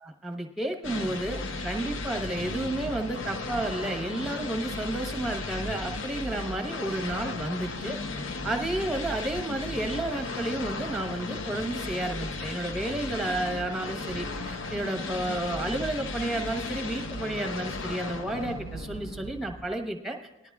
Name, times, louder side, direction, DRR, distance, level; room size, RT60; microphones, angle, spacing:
voice 1, 0.0-8.0 8.4-20.2, right 1 dB, ahead, 4 dB, 1.0 m, -31 dB
sound 1, 0.8-19.8, left 3 dB, 75° left, 0.8 m, -35 dB
19.0 x 11.5 x 2.4 m, 1.0 s
head